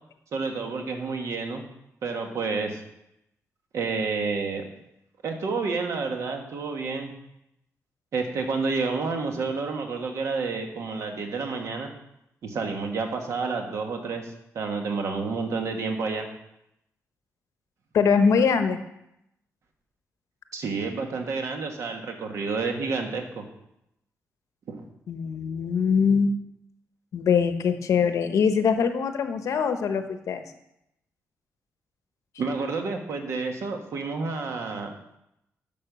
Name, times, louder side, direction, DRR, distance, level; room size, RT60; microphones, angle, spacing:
voice 1, 0.3-1.6 2.0-2.8 3.7-4.6 5.2-7.1 8.1-11.9 12.4-16.3 20.5-23.4 24.7-24.8 32.4-34.9, right 4 dB, 65° right, 3 dB, 1.6 m, -29 dB
voice 2, 17.9-18.8 25.1-26.3 27.1-30.4, left 6 dB, 70° left, 8 dB, 0.9 m, -22 dB
11.0 x 5.6 x 6.8 m, 0.81 s
wide cardioid pair, 175°, 6 cm